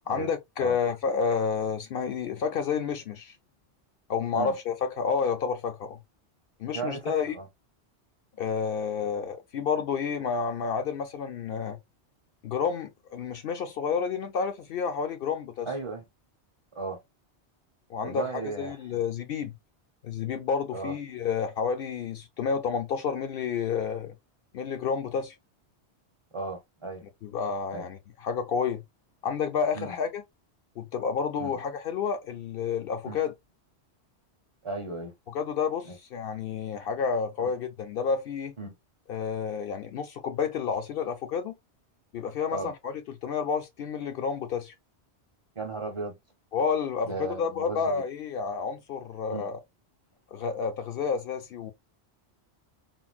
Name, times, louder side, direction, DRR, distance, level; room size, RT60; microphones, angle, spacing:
voice 1, 0.1-3.3 4.1-6.0 6.6-7.4 8.4-11.8 12.4-15.7 17.9-19.6 20.0-24.1 24.5-25.3 27.2-28.8 29.2-30.2 30.8-33.3 35.3-38.5 39.1-41.5 42.1-42.9 43.2-44.7 46.5-49.6 50.3-51.7, left 6 dB, 65° left, 0.7 m, -30 dB
voice 2, 6.7-7.4 15.7-16.0 16.8-17.0 18.0-19.0 20.7-20.9 26.3-27.0 27.7-27.8 29.7-29.9 31.4-31.6 33.1-33.2 34.6-35.1 35.9-36.0 37.4-37.5 38.6-38.7 42.5-42.7 45.6-46.2 47.0-48.0 49.3-49.5, right 3 dB, 35° right, 0.6 m, -35 dB
3.8 x 2.0 x 2.3 m
omnidirectional pair, 1.2 m